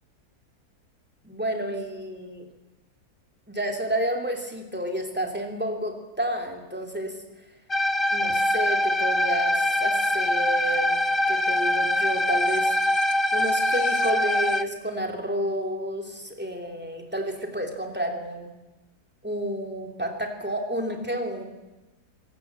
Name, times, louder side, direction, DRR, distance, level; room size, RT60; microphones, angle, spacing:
voice 1, 1.2-2.5 3.5-7.1 8.1-12.8 13.3-18.5 19.2-21.4, right 1 dB, 5° right, 3 dB, 3.1 m, -30 dB
sound 1, 7.7-14.6, left 1 dB, 30° left, 0.5 m, -23 dB
25.5 x 15.5 x 8.3 m, 1.1 s
omnidirectional pair, 1.7 m